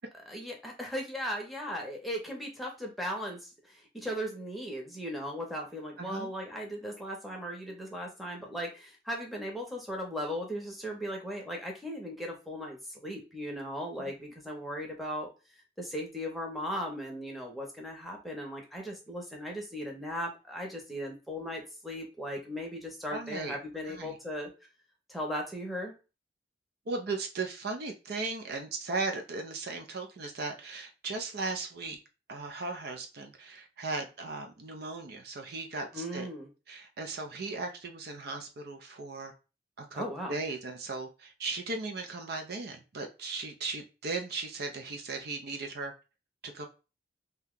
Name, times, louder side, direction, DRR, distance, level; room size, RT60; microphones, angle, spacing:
voice 1, 0.3-15.3 15.8-24.5 25.1-25.9 35.9-36.5 39.9-40.3, equal, ahead, 0.8 m, -37 dB
voice 2, 6.0-6.3 23.1-23.6 23.9-24.2 26.9-32.0 32.3-36.3 36.7-39.3 39.8-40.0 40.3-45.9 46.4-46.7, right 3 dB, 55° right, 0.5 m, -37 dB
2.8 x 2.3 x 3.6 m
head